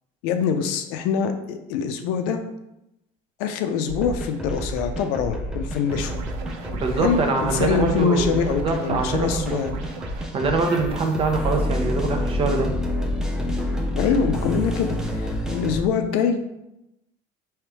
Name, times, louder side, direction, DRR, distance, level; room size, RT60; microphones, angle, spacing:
voice 1, 0.2-2.4 3.4-6.1 7.0-9.7 13.9-16.5, left 6 dB, 85° left, 7 dB, 0.6 m, -24 dB
sound 1, 3.9-15.8, left 1 dB, 5° right, 0.6 m, -28 dB
sound 2, 5.9-10.3, right 5 dB, 85° right, 0.6 m, -38 dB
voice 2, 6.7-9.8 10.3-12.7, right 3 dB, 35° right, 3 dB, 0.8 m, -24 dB
3.4 x 3.1 x 4.6 m, 0.88 s
cardioid pair, 115°, 15 cm